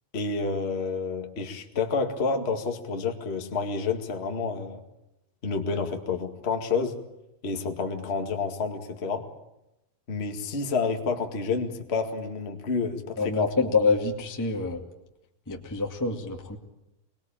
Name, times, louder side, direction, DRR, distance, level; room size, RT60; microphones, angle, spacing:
voice 1, 0.1-4.8 5.4-7.0 7.4-9.3 10.1-13.5, left 4 dB, 25° left, 4 dB, 1.4 m, -29 dB
voice 2, 13.2-14.8 15.5-16.6, left 4 dB, 5° left, 1 dB, 1.5 m, -26 dB
24.0 x 21.0 x 8.9 m, 0.90 s
omnidirectional pair, 4.2 m